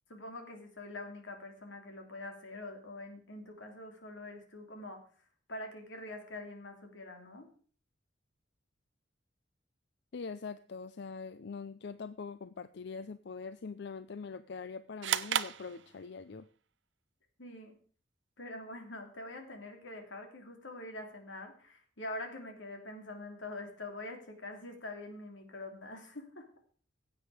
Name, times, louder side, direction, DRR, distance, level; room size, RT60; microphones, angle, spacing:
voice 1, 0.1-5.0 5.5-7.5 17.4-17.7 18.4-26.5, left 2 dB, 90° left, 4 dB, 3.1 m, -45 dB
voice 2, 10.1-16.5, left 5 dB, 65° left, 13 dB, 0.5 m, -43 dB
sound 1, 15.0-16.4, right 9 dB, 75° right, 0.6 m, -34 dB
16.0 x 8.5 x 5.0 m, 0.43 s
head